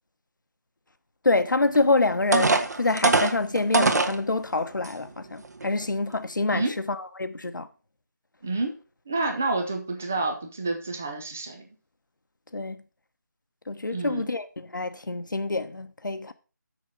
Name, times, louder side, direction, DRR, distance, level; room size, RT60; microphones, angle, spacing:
voice 1, 1.2-7.7 12.5-12.8 13.7-16.3, left 3 dB, 80° left, 1.1 m, -26 dB
sound 1, 1.7-1.8 2.3-4.2 4.8-4.9 5.4-5.7, right 3 dB, 60° right, 1.4 m, -22 dB
voice 2, 8.4-8.7 9.1-11.6 13.9-14.3, right 2 dB, 5° right, 0.3 m, -29 dB
7.4 x 6.4 x 5.4 m
figure-of-eight pair, 170°, 10 cm